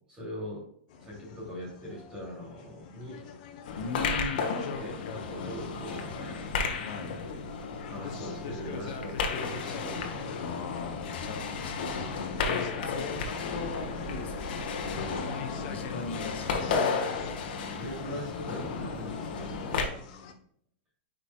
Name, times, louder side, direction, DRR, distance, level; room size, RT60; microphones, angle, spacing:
voice 1, 0.1-0.7 1.0-3.2 4.7-6.6 7.9-10.6 15.5-16.0 17.8-20.0, equal, 15° right, -4 dB, 2.6 m, -41 dB
sound 1, 0.9-20.3, left 6 dB, 40° left, 0.9 m, -45 dB
sound 2, 3.6-19.9, left 5 dB, 55° left, 1.2 m, -33 dB
voice 2, 3.7-4.5 5.3-5.8 6.9-7.2 10.4-15.3 15.7-16.9, left 4 dB, 80° left, 4 dB, 1.4 m, -39 dB
9.0 x 5.2 x 2.2 m, 0.66 s
supercardioid pair, 180°, 6 cm